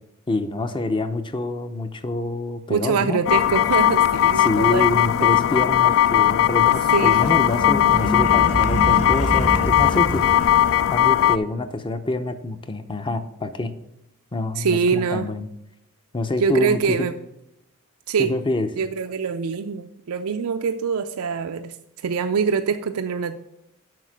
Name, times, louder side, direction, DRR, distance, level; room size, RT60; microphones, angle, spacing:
voice 1, 0.3-3.2 4.4-10.3 10.9-13.7 14.3-15.5 16.1-17.1 18.2-18.7, left 2 dB, 20° left, 9 dB, 0.6 m, -26 dB
voice 2, 2.7-5.4 6.9-7.2 14.6-15.3 16.4-17.1 18.1-18.3 18.8-21.8 22.0-23.3, right 5 dB, 70° right, 8 dB, 0.4 m, -24 dB
sound 1, 3.3-11.4, left 11 dB, 65° left, 0.3 m, -18 dB
sound 2, 6.8-11.1, left 1 dB, 85° left, 1.5 m, -27 dB
7.7 x 5.8 x 6.3 m, 0.86 s
head